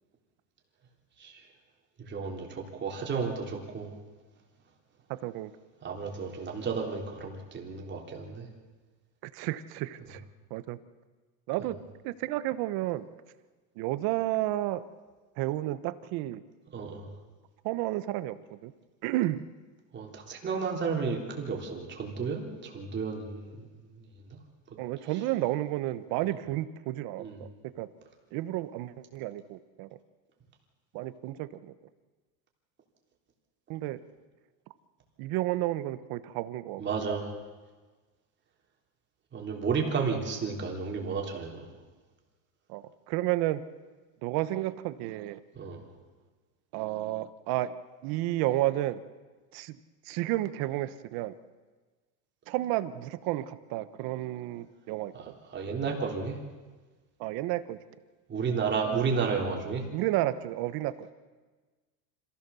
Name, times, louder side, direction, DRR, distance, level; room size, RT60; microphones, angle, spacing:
voice 1, 2.1-3.9 5.8-8.5 16.7-17.1 19.9-23.6 27.2-27.4 36.8-37.3 39.3-41.6 45.6-45.8 55.2-56.4 58.3-59.8, right 5 dB, 25° right, 0 dB, 3.5 m, -32 dB
voice 2, 5.1-5.5 9.3-10.2 10.5-10.8 11.5-11.8 12.0-13.0 13.8-14.8 15.4-16.4 17.6-18.4 18.6-18.7 19.0-19.4 24.8-27.5 27.8-27.9 28.3-29.9 30.9-31.7 33.7-34.0 35.2-37.1 42.7-43.6 44.2-45.4 46.7-47.7 48.0-49.0 49.5-49.8 50.0-51.3 52.5-55.1 57.2-57.8 59.9-61.1, right 15 dB, 55° right, 13 dB, 1.1 m, -31 dB
26.5 x 16.0 x 7.0 m, 1.3 s
supercardioid pair, 150°, 44 cm